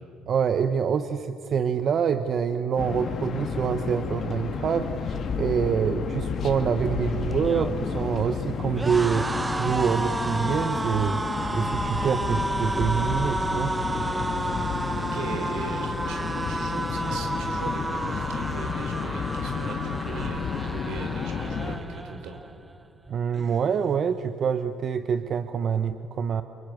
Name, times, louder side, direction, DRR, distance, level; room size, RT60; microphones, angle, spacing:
voice 1, 0.3-13.7 23.1-26.4, right 7 dB, 50° right, 10 dB, 1.1 m, -26 dB
sound 1, 2.8-21.8, left 6 dB, 50° left, 2.7 m, -31 dB
sound 2, 7.3-22.5 22.8-23.1 23.3-24.1, right 2 dB, 15° right, 1.2 m, -31 dB
voice 2, 15.0-20.4 20.7-22.4, right 4 dB, 80° right, 6 dB, 4.3 m, -39 dB
29.0 x 24.5 x 8.0 m, 2.6 s
cardioid pair, 95°, 0 cm